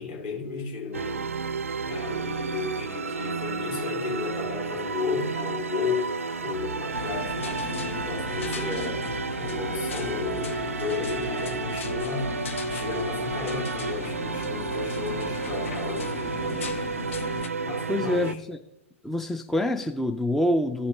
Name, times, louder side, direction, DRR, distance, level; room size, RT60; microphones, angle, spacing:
voice 1, 0.0-6.1 6.4-9.0 9.4-16.8 17.6-18.4, left 5 dB, 45° left, 2.9 m, -34 dB
sound 1, 0.9-18.3, right 4 dB, 80° right, 0.4 m, -31 dB
sound 2, 6.9-17.5, left 7 dB, 65° left, 0.5 m, -37 dB
voice 2, 17.9-18.6 19.0-20.9, left 1 dB, 5° left, 0.3 m, -26 dB
15.0 x 5.3 x 3.3 m
figure-of-eight pair, 110°, 7 cm